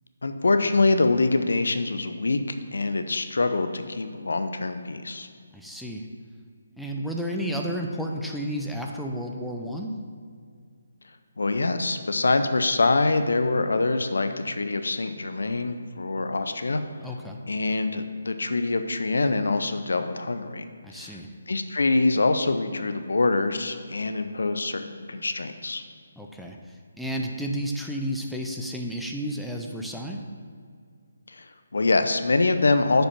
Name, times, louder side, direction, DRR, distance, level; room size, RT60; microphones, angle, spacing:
voice 1, 0.2-5.3 11.4-16.8 17.5-20.6 20.9-21.2 21.5-25.8 31.3-33.0, left 3 dB, 65° left, 9 dB, 0.5 m, -25 dB
voice 2, 5.5-6.0 6.8-9.9 17.0-17.4 20.8-21.3 26.2-30.2, equal, ahead, 0 dB, 0.5 m, -32 dB
6.8 x 5.2 x 5.9 m, 2.1 s
figure-of-eight pair, 145°, 0 cm